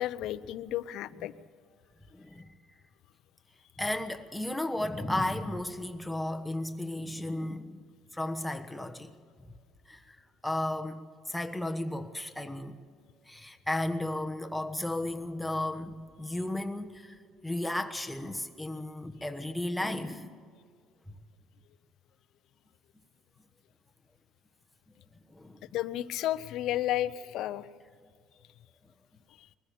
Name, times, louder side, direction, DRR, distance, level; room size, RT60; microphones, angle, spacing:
voice 1, 0.0-1.3 25.7-27.7, left 13 dB, 70° left, 0.8 m, -32 dB
voice 2, 2.1-2.5 3.8-7.8 8.1-9.1 9.9-10.2 10.4-12.8 13.3-20.4 25.3-25.6, left 1 dB, 5° left, 1.2 m, -34 dB
22.0 x 15.0 x 8.6 m
cardioid pair, 145°, 0 cm